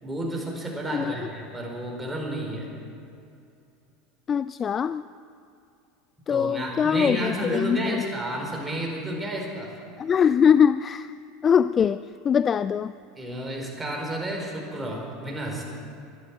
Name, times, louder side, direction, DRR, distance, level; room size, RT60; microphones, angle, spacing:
voice 1, 0.0-2.7 6.3-9.8 13.2-15.6, right 1 dB, 10° right, -1 dB, 4.6 m, -31 dB
voice 2, 4.3-5.0 6.3-8.0 10.0-11.1 11.4-12.9, left 7 dB, 35° left, 15 dB, 0.3 m, -22 dB
12.0 x 11.5 x 9.4 m, 2.6 s
hypercardioid pair, 95°, 0 cm